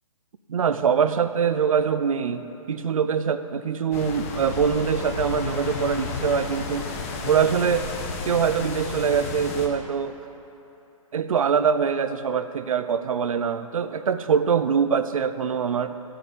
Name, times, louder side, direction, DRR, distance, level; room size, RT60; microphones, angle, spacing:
voice 1, 0.5-6.9 7.2-7.9 8.2-10.1 11.1-16.0, right 7 dB, 70° right, 11 dB, 0.7 m, -23 dB
sound 1, 3.9-9.7, left 4 dB, 25° left, 0.9 m, -32 dB
14.0 x 4.8 x 9.1 m, 3.0 s
hypercardioid pair, 165°, 18 cm